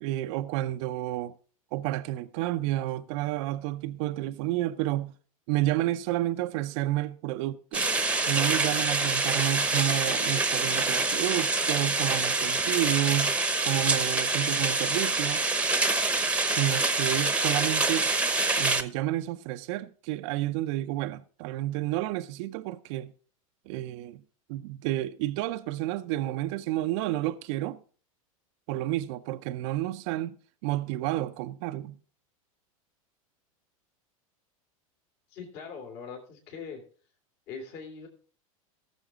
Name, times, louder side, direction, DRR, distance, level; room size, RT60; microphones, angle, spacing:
voice 1, 0.0-1.3 1.7-5.1 5.5-7.9 8.3-13.4 13.6-15.4 16.4-18.1 18.6-23.1 23.7-24.2 24.5-27.8 28.7-30.4 30.6-32.0, right 15 dB, 55° right, 0.6 m, -30 dB
sound 1, 7.7-18.8, right 3 dB, 5° right, 0.9 m, -26 dB
voice 2, 35.3-36.8 37.5-38.1, left 5 dB, 55° left, 3.2 m, -41 dB
18.0 x 7.1 x 3.7 m
hypercardioid pair, 95°, 18 cm